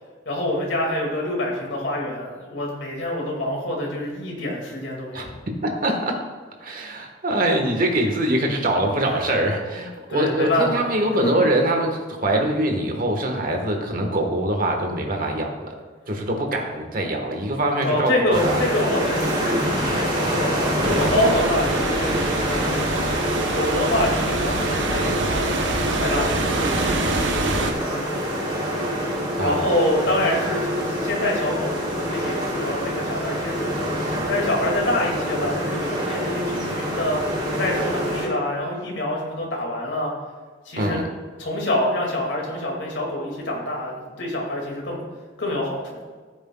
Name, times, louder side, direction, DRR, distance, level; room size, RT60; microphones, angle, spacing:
voice 1, 0.3-5.3 9.1-9.2 10.1-10.9 11.2-11.3 17.8-23.0 23.5-25.6 26.0-28.1 29.4-33.9 34.3-37.2 37.6-40.1 40.7-41.0 41.4-45.0 45.4-46.0, left 1 dB, 75° left, -2 dB, 2.2 m, -26 dB
voice 2, 5.6-6.2 6.6-15.7 16.1-18.6 21.1-21.3 29.4-29.7 40.8-41.1, right 1 dB, 50° right, 3 dB, 1.3 m, -23 dB
sound 1, 18.3-38.3, equal, 25° right, 2.2 m, -26 dB
sound 2, 20.8-27.7, right 2 dB, 75° right, 0.9 m, -26 dB
14.0 x 7.9 x 2.3 m, 1.5 s
head